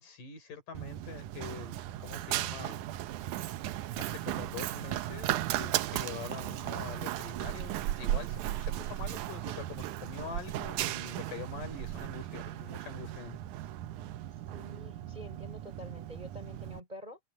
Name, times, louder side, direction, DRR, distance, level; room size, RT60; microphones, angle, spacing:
voice 1, 0.0-2.8 3.9-13.4, left 5 dB, 70° left, 5.2 m, -44 dB
Run, 0.7-16.8, right 14 dB, 75° right, 2.0 m, -36 dB
voice 2, 8.6-9.1 14.5-17.2, equal, 10° right, 5.1 m, -48 dB
open air
omnidirectional pair, 4.0 m